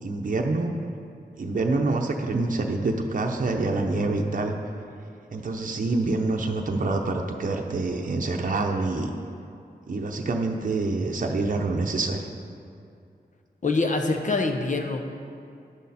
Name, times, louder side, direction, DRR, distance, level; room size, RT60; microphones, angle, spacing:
voice 1, 0.0-0.7 1.4-4.6 5.3-9.1 9.9-12.3, right 3 dB, 50° right, 2 dB, 0.7 m, -26 dB
voice 2, 13.6-15.2, left 3 dB, 45° left, 4 dB, 0.9 m, -25 dB
10.5 x 6.3 x 4.2 m, 2.5 s
cardioid pair, 60°, 17 cm